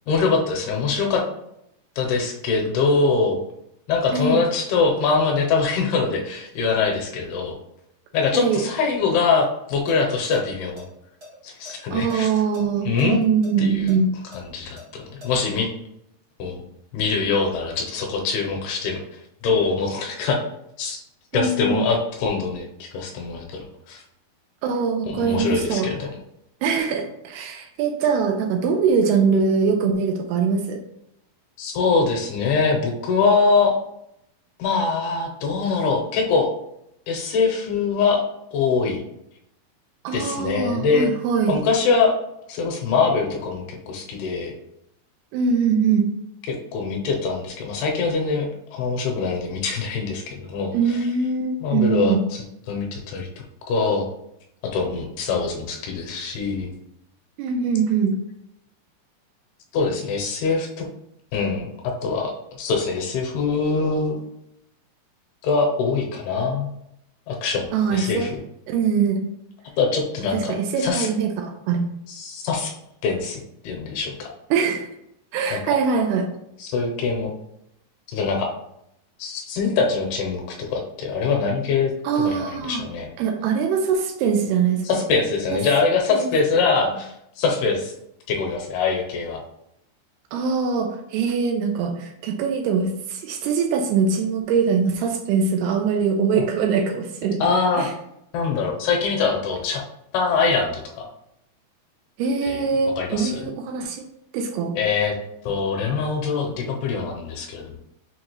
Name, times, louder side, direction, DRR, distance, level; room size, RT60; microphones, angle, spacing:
voice 1, 0.1-1.2 2.0-3.4 3.9-7.6 8.1-10.8 11.4-12.3 12.9-13.2 13.6-14.0 14.3-15.7 16.4-16.6 16.9-19.0 19.4-20.4 20.8-21.0 21.3-24.0 25.1-26.1 31.6-33.8 34.6-36.5 37.1-38.2 38.5-39.0 40.1-41.1 41.5-42.1 42.5-44.5 46.7-51.1 51.6-53.3 53.7-54.1 54.7-56.7 59.7-60.9 61.3-62.3 62.6-64.2 65.4-66.7 67.3-68.4 69.8-71.1 72.1-72.7 73.0-73.4 73.6-74.3 75.5-75.6 76.6-77.3 78.1-78.5 79.2-83.1 84.8-87.9 88.3-89.4 97.4-97.9 98.3-99.8 100.1-101.1 102.4-103.5 104.8-105.1 105.4-107.8, left 4 dB, 80° left, 0 dB, 2.5 m, -23 dB
sound 1, 9.9-10.0 10.3-10.4 10.8-12.2 12.5-12.6 13.0-15.3, left 1 dB, 50° right, 1.0 m, -43 dB
voice 2, 11.9-14.1 21.3-21.9 24.6-25.9 26.6-30.8 40.0-41.6 45.3-46.1 50.7-52.2 57.4-58.1 67.7-68.3 68.7-69.2 70.3-71.8 74.5-74.9 75.3-76.3 82.0-82.8 83.2-84.8 86.1-86.3 90.3-97.4 97.8-97.9 102.2-104.1 104.3-104.7, right 5 dB, 80° right, 4 dB, 2.4 m, -22 dB
6.4 x 2.4 x 2.9 m, 0.78 s
omnidirectional pair, 4.7 m